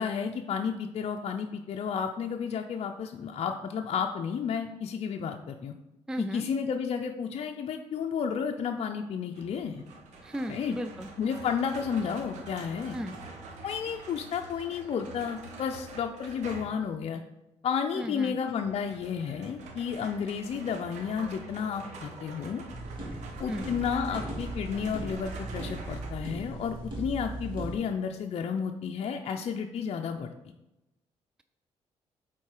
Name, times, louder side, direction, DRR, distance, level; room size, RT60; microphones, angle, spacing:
voice 1, 0.0-5.7 6.2-9.8 10.5-10.8 11.2-13.0 13.6-17.2 17.6-22.6 23.4-30.3, left 6 dB, 60° left, 3 dB, 0.5 m, -32 dB
voice 2, 6.1-6.5 10.2-11.1 12.9-13.2 18.0-18.4 23.5-23.7, equal, 5° right, 9 dB, 0.3 m, -35 dB
sound 1, 9.3-16.9 18.6-26.1, right 3 dB, 85° right, 1.2 m, -46 dB
sound 2, 22.7-27.7, right 2 dB, 45° right, 2.5 m, -38 dB
8.5 x 3.8 x 4.8 m, 0.96 s
cardioid pair, 80°, 12 cm